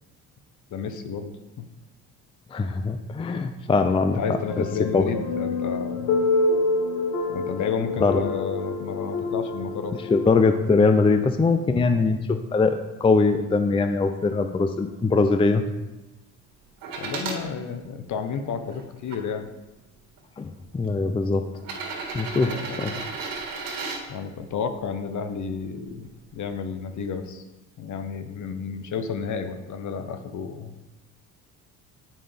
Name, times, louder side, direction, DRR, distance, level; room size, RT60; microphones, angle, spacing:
voice 1, 0.7-1.4 4.2-6.1 7.3-9.9 17.0-19.5 22.3-23.0 24.1-27.4 27.8-30.7, left 6 dB, 55° left, 8 dB, 0.9 m, -31 dB
voice 2, 2.5-4.2 4.6-4.7 4.9-5.1 8.0-8.2 9.9-15.7 20.4-21.4 22.1-22.5 22.8-22.9, left 4 dB, 15° left, 8 dB, 0.4 m, -22 dB
sound 1, 4.1-10.6, left 3 dB, 75° left, 1.2 m, -27 dB
sound 2, 16.8-17.4 18.1-19.2 20.2-20.3 21.6-24.0 25.9-26.0, right 4 dB, 70° right, 1.8 m, -33 dB
9.0 x 5.4 x 3.4 m, 1.0 s
supercardioid pair, 85°, 36 cm